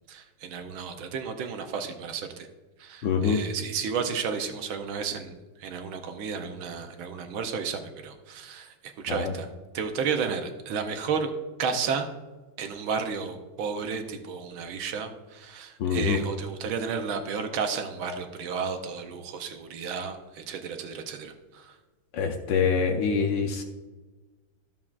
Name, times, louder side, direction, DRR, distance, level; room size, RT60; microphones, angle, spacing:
voice 1, 0.1-2.5 2.8-9.5 9.7-11.3 11.6-12.1 12.6-21.8, right 6 dB, 75° right, 6 dB, 1.5 m, -32 dB
voice 2, 3.0-3.4 9.1-9.3 15.8-16.2 22.1-23.6, left 6 dB, 70° left, 5 dB, 1.2 m, -25 dB
12.5 x 7.2 x 2.4 m, 1.2 s
omnidirectional pair, 2.3 m